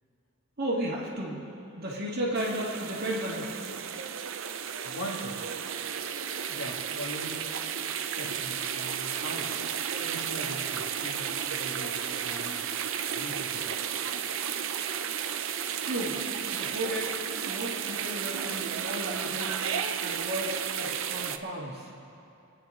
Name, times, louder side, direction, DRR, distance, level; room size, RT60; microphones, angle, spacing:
voice 1, 0.6-1.5 1.8-3.6 15.8-16.2 16.5-17.1 17.5-19.6 20.0-21.9, right 1 dB, 45° right, -4 dB, 2.0 m, -34 dB
sound 1, 2.3-21.4, right 8 dB, 65° right, 0.6 m, -33 dB
voice 2, 4.8-5.4 6.5-7.4 8.1-9.5 10.0-12.6 13.2-13.7, equal, 80° left, -3 dB, 2.5 m, -40 dB
27.5 x 9.6 x 3.9 m, 2.8 s
head